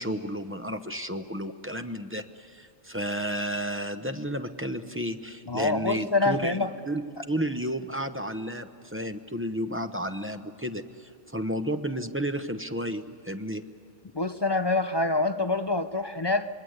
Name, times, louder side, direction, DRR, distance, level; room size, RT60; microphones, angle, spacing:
voice 1, 0.0-6.6 6.9-13.6, equal, 10° right, 8 dB, 0.8 m, -32 dB
voice 2, 5.5-6.7 14.1-16.5, left 3 dB, 40° left, 11 dB, 0.3 m, -26 dB
26.5 x 22.0 x 8.0 m, 2.5 s
omnidirectional pair, 1.3 m